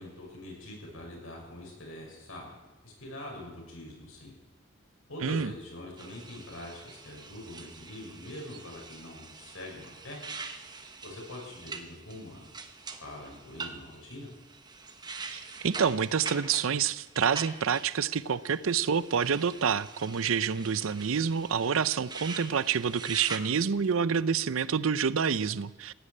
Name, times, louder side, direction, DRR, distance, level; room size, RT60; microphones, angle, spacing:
voice 1, 0.0-4.3 5.1-10.2 11.0-12.5 13.0-14.3, left 1 dB, 80° left, -1 dB, 6.5 m, -44 dB
sound 1, 6.0-23.4, right 4 dB, 20° right, 1.0 m, -44 dB
voice 2, 15.2-25.9, right 6 dB, 80° right, 17 dB, 0.6 m, -28 dB
16.5 x 9.9 x 8.7 m, 1.1 s
head